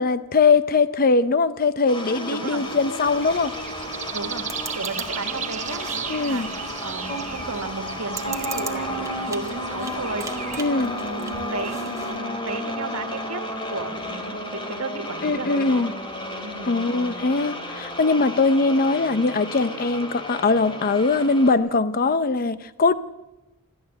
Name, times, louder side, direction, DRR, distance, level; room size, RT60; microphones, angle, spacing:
voice 1, 0.0-3.5 6.1-6.5 10.6-10.9 15.2-15.9 16.7-22.9, left 3 dB, 40° left, 0.7 m, -21 dB
sound 1, 1.9-21.5, left 1 dB, 25° left, 3.1 m, -32 dB
voice 2, 2.3-2.7 4.1-4.5 4.7-10.2 10.7-13.4 13.7-15.9 16.4-16.8, right 3 dB, 75° right, 1.8 m, -34 dB
sound 2, 2.6-12.2, right 4 dB, 15° right, 1.9 m, -41 dB
sound 3, 3.0-10.7, right 7 dB, 35° right, 1.1 m, -36 dB
28.0 x 12.0 x 7.8 m
head